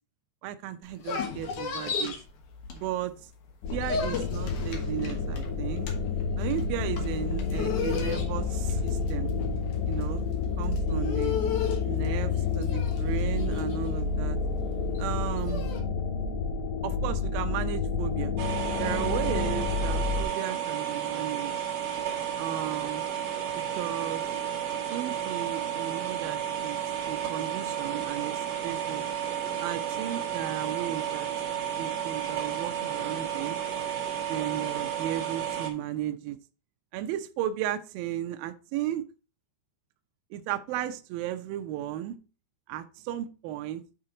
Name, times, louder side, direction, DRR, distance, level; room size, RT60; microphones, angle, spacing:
voice 1, 0.4-2.2 2.7-3.3 3.7-5.9 6.4-9.3 9.9-11.4 11.9-14.4 15.0-15.7 16.8-18.3 18.8-21.5 22.4-23.1 23.8-24.2 24.9-26.8 27.1-29.0 29.6-31.3 31.8-33.6 34.3-36.4 36.9-39.0 40.3-42.2 42.7-43.8, right 12 dB, 85° right, 8 dB, 2.1 m, -35 dB
dog whine, 0.8-3.2 3.5-15.8, left 6 dB, 65° left, 2.2 m, -35 dB
sound 1, 3.6-20.2, left 5 dB, 80° left, 3.1 m, -29 dB
sound 2, 18.4-35.7, right 9 dB, 60° right, 1.8 m, -32 dB
8.8 x 4.5 x 3.8 m, 0.34 s
omnidirectional pair, 5.0 m